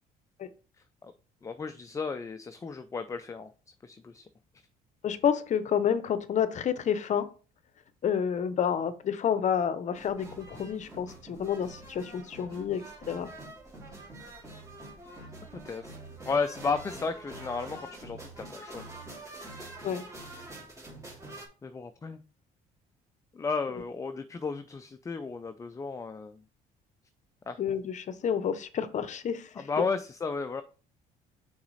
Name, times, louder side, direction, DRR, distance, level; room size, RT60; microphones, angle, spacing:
voice 1, 1.4-3.5 3.8-4.3 15.5-16.0 16.2-18.8 21.6-22.2 23.3-26.4 27.5-27.6 29.6-30.6, left 4 dB, 20° left, 9 dB, 0.4 m, -34 dB
voice 2, 5.0-7.3 8.0-13.3 19.8-20.0 27.6-29.5, left 8 dB, 45° left, 13 dB, 0.7 m, -29 dB
sound 1, 9.9-21.5, right 2 dB, 20° right, 2.4 m, -46 dB
5.9 x 4.0 x 4.1 m, 0.37 s
cardioid pair, 110°, 17 cm